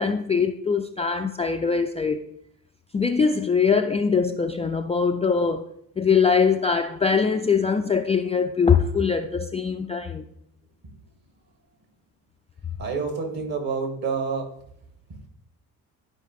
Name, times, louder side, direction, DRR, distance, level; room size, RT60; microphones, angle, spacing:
voice 1, 0.0-2.2 2.9-10.2, left 5 dB, 15° left, 0.4 m, -22 dB
voice 2, 12.8-14.5 15.1-15.3, right 5 dB, 50° right, 2.4 m, -28 dB
12.5 x 4.9 x 3.1 m
hypercardioid pair, 50°, 46 cm